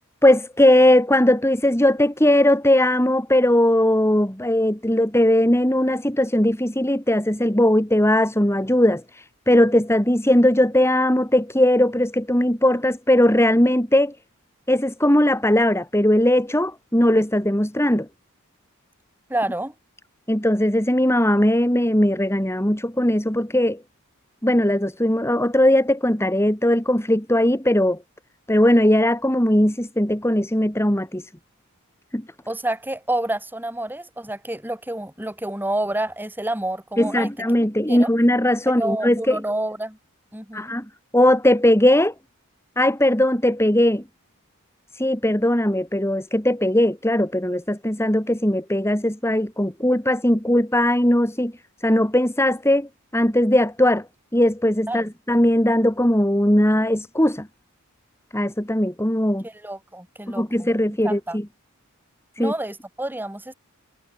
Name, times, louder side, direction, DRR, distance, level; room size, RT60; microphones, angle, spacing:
voice 1, 0.2-14.2 14.7-18.1 20.3-23.8 24.4-28.0 28.5-31.3 32.1-32.2 37.0-39.4 40.5-40.9 41.1-42.1 42.8-44.0 44.9-51.5 51.8-54.1 54.3-57.5 58.3-59.4 60.3-61.5 62.4-62.5, left 1 dB, 10° left, 3.6 m, -19 dB
voice 2, 19.3-19.7 32.5-37.3 37.9-38.1 38.8-40.0 40.3-40.8 54.9-55.1 59.4-61.4 62.4-63.5, right 1 dB, 10° right, 6.1 m, -28 dB
head